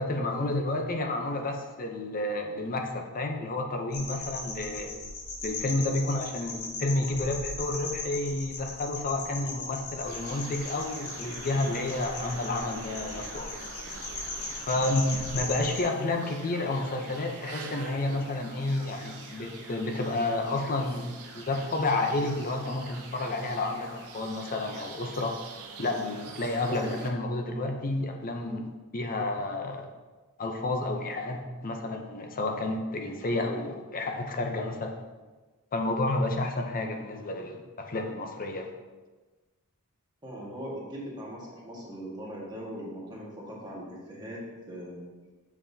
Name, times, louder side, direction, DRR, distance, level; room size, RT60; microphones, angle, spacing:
voice 1, 0.0-4.9 5.4-13.5 14.7-21.1 21.5-25.4 25.8-29.9 30.4-35.0 35.7-38.7, left 2 dB, 40° left, 3 dB, 0.7 m, -30 dB
sound 1, 3.9-15.8, left 3 dB, 80° left, 1.6 m, -38 dB
sound 2, 10.0-27.1, right 4 dB, 80° right, 0.7 m, -45 dB
sound 3, 10.8-20.8 21.2-21.6 22.0-22.4 22.8-23.2 23.6-24.0 24.4-24.8, left 1 dB, 60° left, 1.9 m, -52 dB
voice 2, 40.2-44.4 44.7-45.0, equal, 20° right, -5 dB, 1.5 m, -40 dB
7.1 x 5.6 x 2.8 m, 1.3 s
head